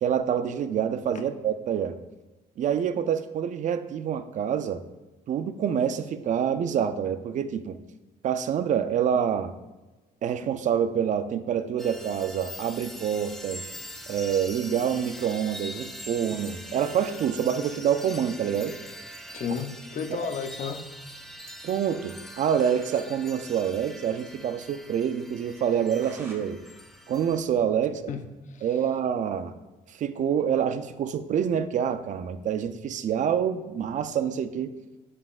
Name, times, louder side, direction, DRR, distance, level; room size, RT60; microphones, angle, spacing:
voice 1, 0.0-2.0 2.6-4.8 5.3-7.8 8.2-9.5 10.2-13.6 14.1-18.8 21.6-26.6 27.1-28.0 28.6-29.5 29.9-34.7, right 8 dB, 45° right, 11 dB, 0.5 m, -27 dB
sound 1, 11.8-27.4, equal, ahead, 0.5 m, -43 dB
voice 2, 19.3-20.8 28.1-28.7, left 6 dB, 45° left, 7 dB, 0.6 m, -33 dB
sound 2, 22.3-23.1 23.4-23.5 23.8-23.9 24.3-24.4 24.8-24.9 25.5-26.4 26.8-28.2, right 1 dB, 15° right, 1.3 m, -52 dB
8.3 x 5.1 x 2.5 m, 1.1 s
cardioid pair, 110°, 17 cm